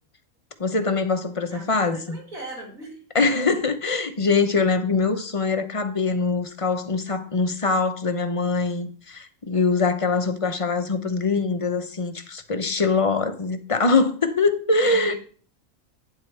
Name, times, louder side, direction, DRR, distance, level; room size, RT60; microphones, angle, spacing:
voice 1, 0.6-2.2 3.1-15.1, left 4 dB, 30° left, 0.7 m, -23 dB
voice 2, 1.5-3.0 14.8-15.2, right 2 dB, 75° right, 5.5 m, -39 dB
12.0 x 9.1 x 3.3 m
omnidirectional pair, 1.4 m